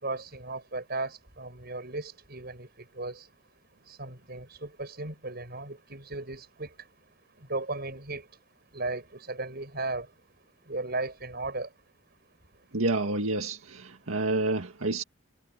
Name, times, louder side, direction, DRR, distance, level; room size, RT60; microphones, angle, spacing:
voice 1, 0.0-2.7 2.9-3.3 3.9-6.7 7.5-8.2 8.7-10.1 10.7-11.7, right 2 dB, 50° right, 6.7 m, -35 dB
voice 2, 12.7-15.0, right 2 dB, 80° right, 1.9 m, -29 dB
head